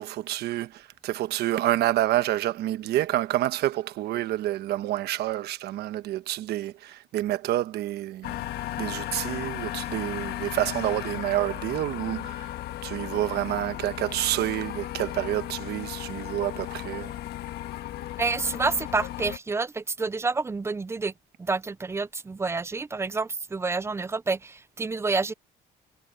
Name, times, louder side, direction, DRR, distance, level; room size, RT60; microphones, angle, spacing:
voice 1, 0.0-8.3 8.8-12.5 12.8-17.1, right 14 dB, 75° right, 1.1 m, -28 dB
sound 1, 8.2-19.4, left 13 dB, 75° left, 1.4 m, -35 dB
voice 2, 18.2-21.1 21.4-25.3, right 4 dB, 15° right, 0.4 m, -28 dB
cardioid pair, 110°, 17 cm